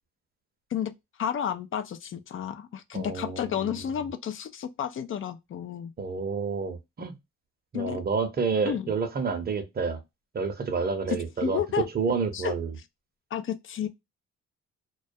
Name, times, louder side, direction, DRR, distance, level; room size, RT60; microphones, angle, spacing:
voice 1, 1.2-5.9 7.7-8.0 8.6-8.9 11.1-11.9 12.3-12.5 13.3-13.9, left 9 dB, 45° left, 0.4 m, -31 dB
voice 2, 2.9-4.1 6.0-7.2 7.7-10.0 10.3-12.7, right 5 dB, 30° right, 0.7 m, -29 dB
2.3 x 2.2 x 2.6 m
cardioid pair, 90°, 30 cm